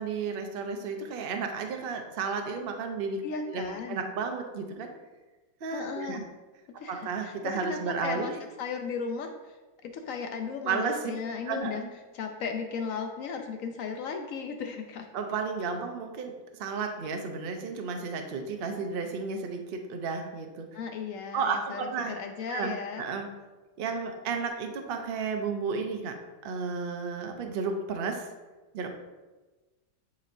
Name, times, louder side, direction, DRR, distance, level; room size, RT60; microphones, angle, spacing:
voice 1, 0.0-4.9 5.6-6.2 6.9-8.3 10.6-11.0 11.5-11.8 15.1-16.3 16.6-20.7 21.3-22.1 22.5-23.3 23.8-26.2 26.4-28.3 28.7-28.9, right 5 dB, 60° right, 4 dB, 0.6 m, -33 dB
voice 2, 3.2-4.0 5.7-6.2 6.8-7.3 7.6-8.3 8.6-9.6 9.8-11.8 12.1-15.1 20.7-23.0, left 5 dB, 70° left, 5 dB, 0.8 m, -36 dB
9.5 x 4.3 x 2.6 m, 1.2 s
omnidirectional pair, 1.8 m